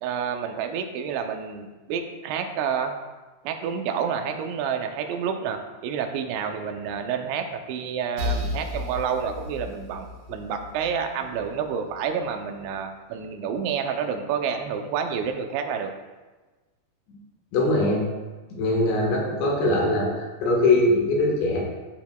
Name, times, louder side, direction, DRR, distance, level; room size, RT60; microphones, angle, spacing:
voice 1, 0.0-2.9 3.4-15.9, right 7 dB, 90° right, 5 dB, 3.1 m, -29 dB
sound 1, 8.2-11.9, left 2 dB, 55° right, 2.3 m, -33 dB
voice 2, 17.5-18.1 18.5-21.6, left 2 dB, 85° left, -1 dB, 3.9 m, -22 dB
14.0 x 7.3 x 2.3 m, 1.2 s
omnidirectional pair, 5.0 m